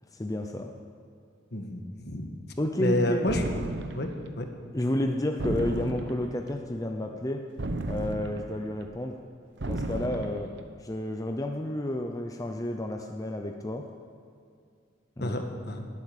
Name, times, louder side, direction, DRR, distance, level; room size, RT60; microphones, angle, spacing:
voice 1, 0.1-0.7 2.6-3.3 4.7-7.5 7.9-9.2 9.7-10.5 10.8-13.9 15.2-15.3, left 1 dB, 20° left, 3 dB, 0.6 m, -31 dB
voice 2, 1.5-2.3 2.8-3.4 3.9-4.1 4.4-4.5 15.2-15.9, left 1 dB, 55° left, 4 dB, 1.5 m, -29 dB
sound 1, 3.3-4.2 5.4-6.4 7.6-8.6 9.6-10.5, right 2 dB, 60° right, 0.9 m, -33 dB
19.0 x 8.5 x 6.6 m, 2.3 s
head